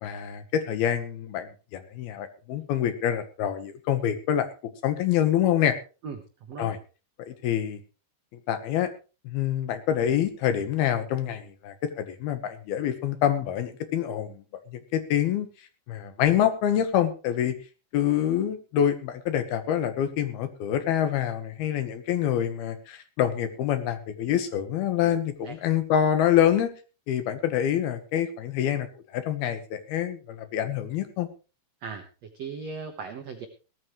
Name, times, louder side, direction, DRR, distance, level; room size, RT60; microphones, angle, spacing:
voice 1, 0.0-4.5 4.8-5.8 6.6-6.8 7.3-7.8 8.5-8.9 9.2-14.4 14.9-15.5 15.9-17.5 17.9-26.7 27.1-28.9 29.1-31.3, left 10 dB, 70° left, 10 dB, 2.9 m, -26 dB
voice 2, 32.3-33.5, right 5 dB, 80° right, 6 dB, 1.4 m, -37 dB
18.5 x 14.0 x 3.2 m, 0.33 s
omnidirectional pair, 5.0 m